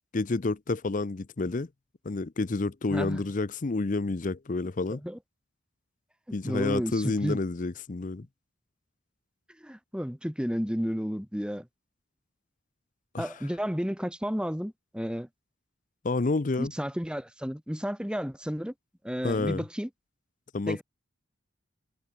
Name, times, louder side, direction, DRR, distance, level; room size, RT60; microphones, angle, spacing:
voice 1, 0.1-1.7 2.0-5.0 6.3-8.2 13.1-13.3 16.0-16.7 19.2-19.6 20.5-20.8, left 3 dB, 40° left, 0.6 m, -29 dB
voice 2, 2.9-3.2 5.0-5.2 6.4-7.4 9.6-11.7 13.2-15.3 16.6-18.7 19.0-19.9 20.7-20.8, equal, 5° right, 1.8 m, -32 dB
head